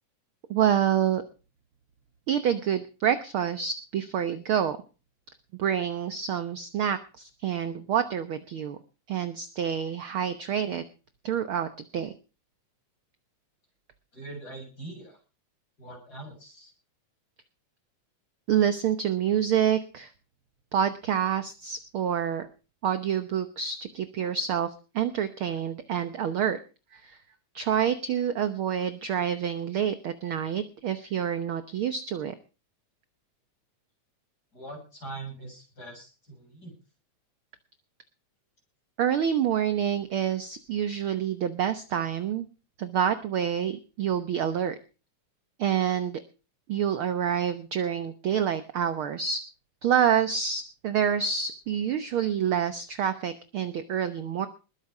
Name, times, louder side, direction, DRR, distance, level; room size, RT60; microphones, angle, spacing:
voice 1, 0.5-1.2 2.3-4.8 5.6-8.8 9.1-10.8 11.2-12.1 18.5-20.1 20.7-22.5 22.8-26.6 26.9-27.2 27.5-32.3 39.0-42.5 42.8-44.8 45.6-46.2 46.7-49.4 49.8-54.5, right 8 dB, 60° right, 10 dB, 1.4 m, -27 dB
voice 2, 14.1-15.2 15.8-16.7 34.5-36.7, right 2 dB, 30° left, 2 dB, 8.2 m, -42 dB
20.5 x 9.3 x 4.9 m, 0.34 s
omnidirectional pair, 3.4 m